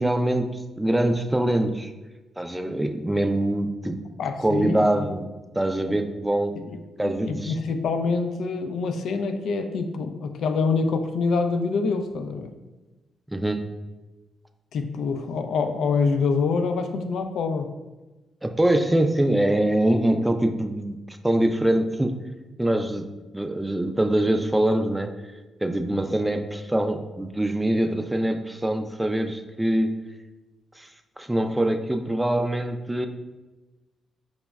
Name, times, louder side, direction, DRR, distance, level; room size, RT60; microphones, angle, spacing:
voice 1, 0.0-1.9 2.4-4.0 4.4-5.3 5.6-6.5 7.0-7.5 13.3-13.6 18.4-22.2 22.6-23.1 23.3-25.3 25.6-30.0 30.8-30.9 31.2-33.1, right 1 dB, 10° right, 7 dB, 0.3 m, -24 dB
voice 2, 4.2-5.1 5.9-6.0 6.7-12.5 14.7-17.7, left 4 dB, 70° left, 6 dB, 0.3 m, -26 dB
5.0 x 2.0 x 2.3 m, 1.1 s
hypercardioid pair, 50°, 0 cm